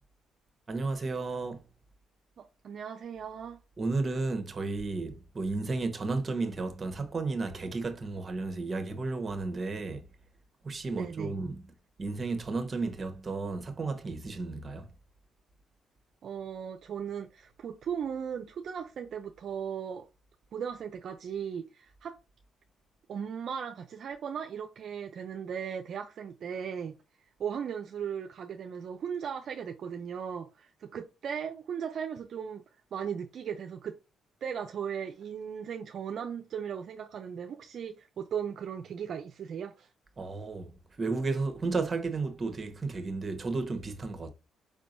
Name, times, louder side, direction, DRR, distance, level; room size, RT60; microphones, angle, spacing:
voice 1, 0.7-1.6 3.8-10.0 10.6-11.6 12.0-14.9 40.2-44.3, right 3 dB, 35° right, 1.2 m, -33 dB
voice 2, 2.4-3.6 10.9-11.3 16.2-20.1 20.5-22.2 23.1-27.0 27.4-32.6 32.9-34.0 34.4-39.9, right 7 dB, 60° right, 0.5 m, -37 dB
5.1 x 3.5 x 2.6 m
cardioid pair, 90°, 0 cm